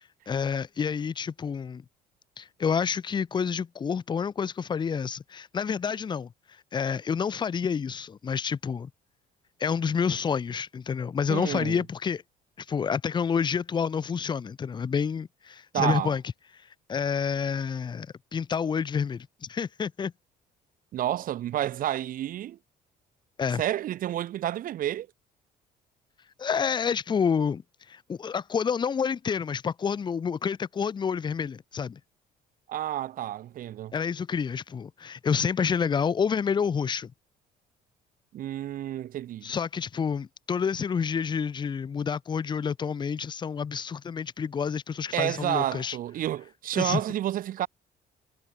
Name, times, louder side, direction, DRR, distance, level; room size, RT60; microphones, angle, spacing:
voice 1, 0.3-1.8 2.4-6.3 6.7-8.9 9.6-12.2 12.6-16.2 16.9-20.1 23.4-23.6 26.4-27.6 27.9-32.0 33.9-37.1 39.4-46.0 46.7-47.0, left 6 dB, 25° left, 0.6 m, -28 dB
voice 2, 11.3-11.8 15.7-16.1 20.9-22.6 23.6-25.1 32.7-33.9 38.3-39.5 45.1-47.7, right 12 dB, 55° right, 0.7 m, -30 dB
cardioid pair, 110°, 17 cm